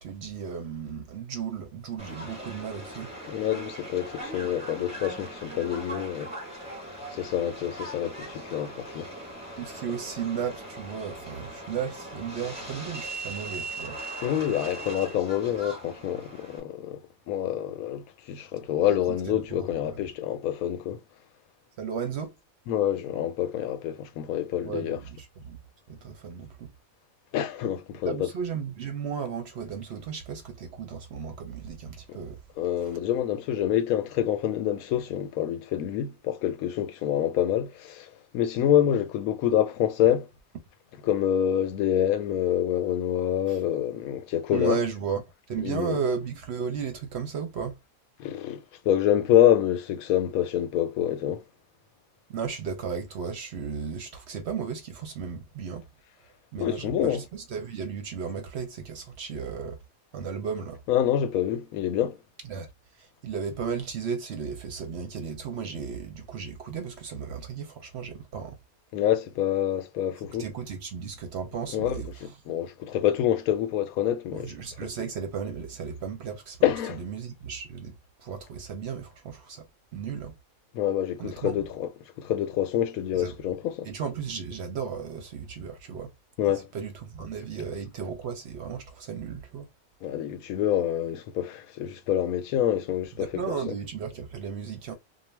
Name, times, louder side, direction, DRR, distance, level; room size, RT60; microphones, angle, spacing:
voice 1, 0.0-3.1 9.6-14.0 18.8-20.0 21.8-22.3 24.6-25.6 25.9-26.7 28.0-32.4 43.5-43.6 44.5-47.8 52.3-55.8 56.5-59.8 60.1-60.8 62.4-62.7 63.0-68.6 70.4-72.1 74.3-76.6 76.9-79.6 79.9-80.3 81.2-81.6 83.1-83.4 83.8-86.1 86.7-89.7 93.2-94.9, right 6 dB, 60° right, 0.8 m, -35 dB
Subway metro underground, 2.0-16.6, right 1 dB, 5° right, 1.0 m, -40 dB
voice 2, 3.3-6.3 7.1-9.1 14.2-17.0 17.3-21.0 22.7-25.0 27.3-28.3 32.1-32.2 32.6-40.3 41.0-44.8 45.6-46.0 48.2-51.4 56.6-57.2 60.9-62.2 68.9-70.5 71.7-74.5 76.6-77.0 80.7-81.9 82.2-83.9 86.4-86.7 90.0-93.4 93.7-93.8, left 11 dB, 90° left, 1.0 m, -26 dB
2.4 x 2.1 x 3.1 m
omnidirectional pair, 1.5 m